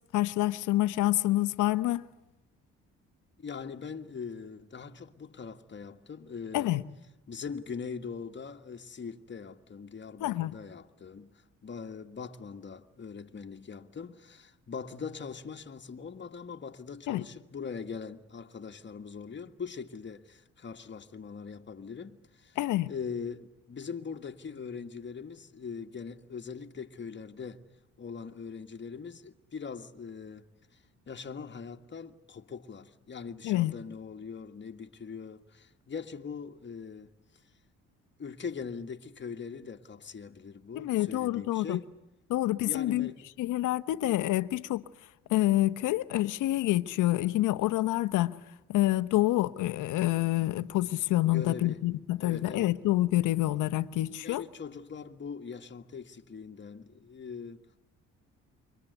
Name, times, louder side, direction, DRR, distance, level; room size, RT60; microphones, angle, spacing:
voice 1, 0.1-2.0 6.5-6.8 10.2-10.5 17.1-17.2 22.6-22.9 33.4-33.7 40.7-41.8 42.3-43.1 43.4-44.8 45.3-48.3 48.7-54.4, left 16 dB, 90° left, 1.1 m, -27 dB
voice 2, 3.4-6.8 7.3-22.6 22.9-27.7 28.0-30.5 30.7-30.8 31.1-37.1 38.2-41.9 42.6-43.2 51.3-51.8 52.2-52.8 54.2-57.8, left 6 dB, 40° left, 1.9 m, -41 dB
29.5 x 24.5 x 8.1 m
cardioid pair, 90°, 30 cm